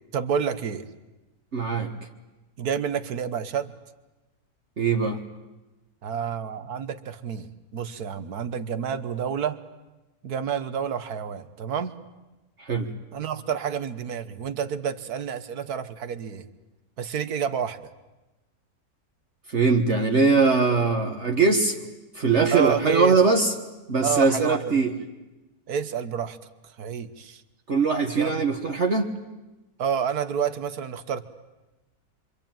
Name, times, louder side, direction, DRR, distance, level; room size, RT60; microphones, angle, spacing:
voice 1, 0.1-0.9 2.6-3.7 6.0-9.6 10.2-12.0 13.1-16.5 17.0-17.8 22.5-23.2 24.0-24.8 25.7-26.4 26.6-27.4 28.2-28.5 29.8-31.3, right 7 dB, 80° right, 11 dB, 1.7 m, -29 dB
voice 2, 1.5-1.9 4.8-5.2 12.6-12.9 19.5-21.8 22.2-23.5 23.9-24.9 27.7-29.1, right 4 dB, 50° right, 2 dB, 1.7 m, -21 dB
26.5 x 25.0 x 9.0 m, 1.1 s
omnidirectional pair, 1.6 m